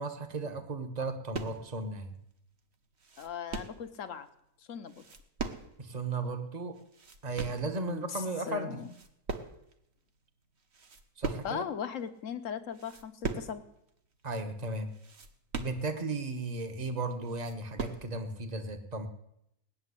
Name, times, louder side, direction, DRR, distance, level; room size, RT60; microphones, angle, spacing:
voice 1, 0.0-2.1 5.8-6.8 7.2-8.8 11.2-11.7 14.2-14.9 15.6-19.1, right 3 dB, 30° right, 7 dB, 1.3 m, -35 dB
sound 1, 1.3-1.8 2.3-2.4 2.7-3.9 4.9-5.9 6.2-6.3 6.7-7.7 8.3-8.6 8.8-9.8 10.2-10.3 10.6-11.7 12.2-12.3 12.7-13.6 13.9-14.0 14.4-14.5 14.9-16.2 16.7-16.8 17.1-18.1, right 4 dB, 45° right, 1.4 m, -39 dB
voice 2, 3.2-4.3 4.7-5.0 7.6-8.9 11.4-13.6, left 7 dB, 60° left, 10 dB, 1.3 m, -38 dB
18.5 x 7.3 x 9.8 m, 0.79 s
omnidirectional pair, 1.6 m